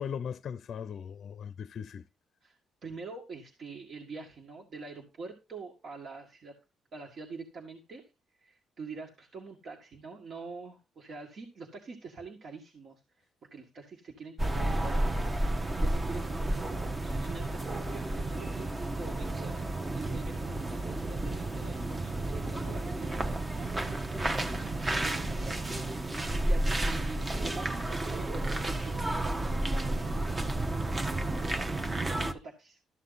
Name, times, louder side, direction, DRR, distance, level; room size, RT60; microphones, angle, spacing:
voice 1, 0.0-2.1, left 7 dB, 60° left, 0.5 m, -38 dB
voice 2, 2.4-6.5 6.9-8.1 8.4-13.2 13.5-23.7 24.2-24.6 25.0-30.6 31.9-32.8, right 4 dB, 55° right, 2.0 m, -45 dB
sound 1, 14.4-32.3, right 1 dB, 25° right, 1.1 m, -31 dB
13.5 x 6.7 x 4.1 m
cardioid pair, 90°, 0 cm